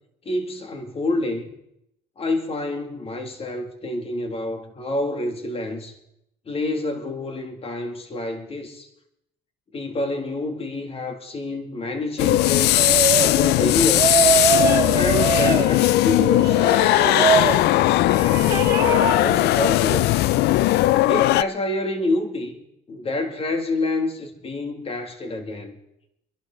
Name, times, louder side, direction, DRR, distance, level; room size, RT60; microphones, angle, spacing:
voice 1, 0.3-1.5 2.2-5.9 6.5-8.9 9.7-12.8 13.2-14.2 14.9-18.0 18.9-20.2 21.0-22.5 22.9-25.8, left 2 dB, 35° left, 2.5 m, -28 dB
sound 1, 12.2-21.4, left 16 dB, 75° left, 0.4 m, -18 dB
sound 2, 12.8-13.4 13.9-15.7 16.3-17.6 18.1-19.2, right 5 dB, 25° right, 2.7 m, -22 dB
25.0 x 11.5 x 3.9 m
cardioid pair, 110°, 17 cm